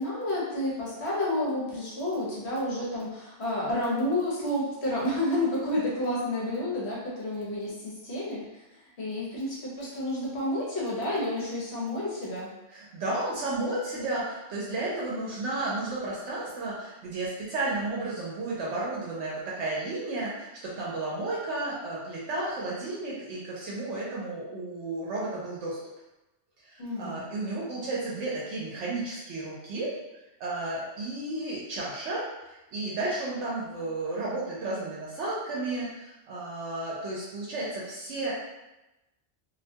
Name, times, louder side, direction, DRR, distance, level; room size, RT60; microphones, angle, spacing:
voice 1, 0.0-8.4 9.0-12.5 26.8-27.2, left 1 dB, 65° left, -6 dB, 1.1 m, -30 dB
voice 2, 12.7-25.8 26.7-29.9 30.4-38.3, right 2 dB, 75° right, -6 dB, 0.9 m, -33 dB
2.6 x 2.2 x 2.7 m, 0.98 s
omnidirectional pair, 1.2 m